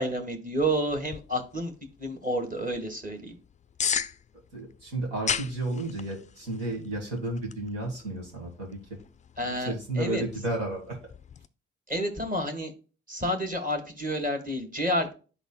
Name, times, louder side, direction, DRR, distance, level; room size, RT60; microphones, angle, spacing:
voice 1, 0.0-1.7 2.0-3.3 9.4-10.2 11.9-12.7 13.1-15.1, equal, 25° right, 4 dB, 1.5 m, -30 dB
sound 1, 0.9-11.5, left 7 dB, 20° left, 0.3 m, -38 dB
voice 2, 4.5-8.8 9.4-11.0, right 2 dB, 80° right, -1 dB, 1.9 m, -32 dB
11.0 x 4.0 x 2.3 m, 0.36 s
hypercardioid pair, 40°, 36 cm